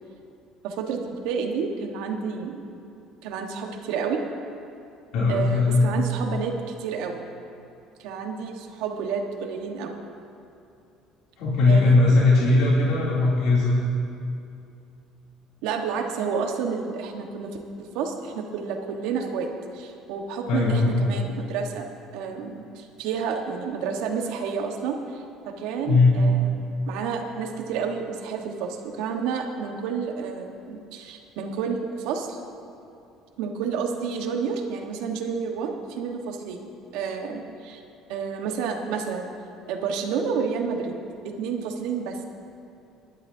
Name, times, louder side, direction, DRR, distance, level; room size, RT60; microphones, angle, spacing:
voice 1, 0.6-2.8 3.2-4.2 5.3-6.5 6.8-7.2 8.0-10.0 11.7-11.9 12.2-12.3 15.6-17.5 17.8-19.5 19.7-32.4 33.4-37.8 38.1-39.3 39.7-40.9 41.3-42.2, right 6 dB, 80° right, 3 dB, 1.4 m, -30 dB
voice 2, 5.1-5.9 11.4-13.8 20.5-21.0 25.9-26.2, left 3 dB, 75° left, -7 dB, 3.0 m, -19 dB
23.0 x 11.0 x 2.8 m, 2.7 s
supercardioid pair, 90°, 0 cm